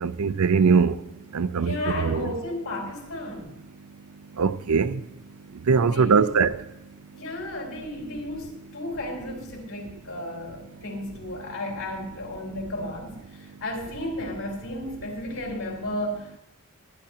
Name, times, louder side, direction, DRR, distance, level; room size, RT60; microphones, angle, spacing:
voice 1, 0.0-0.9 1.3-2.3 4.4-5.0 5.7-6.5, right 5 dB, 90° right, 0.5 m, -21 dB
voice 2, 1.5-3.5 5.8-6.4 7.1-16.4, left 1 dB, 85° left, 4.0 m, -34 dB
21.0 x 9.9 x 2.9 m
head